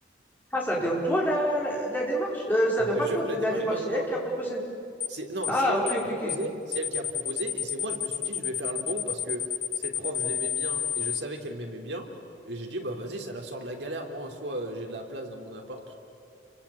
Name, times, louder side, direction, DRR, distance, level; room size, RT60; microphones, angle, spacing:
voice 1, 0.5-4.6 5.5-6.3, equal, 10° left, -3 dB, 5.1 m, -27 dB
voice 2, 2.9-4.1 5.1-9.4 9.7-12.1 12.5-15.9, right 1 dB, 75° right, 2 dB, 3.4 m, -35 dB
sound 1, 5.0-5.2 5.4-5.6 5.9-6.0 6.3-6.5 6.7-11.2, left 9 dB, 35° left, 0.7 m, -30 dB
29.0 x 23.5 x 8.7 m, 2.6 s
head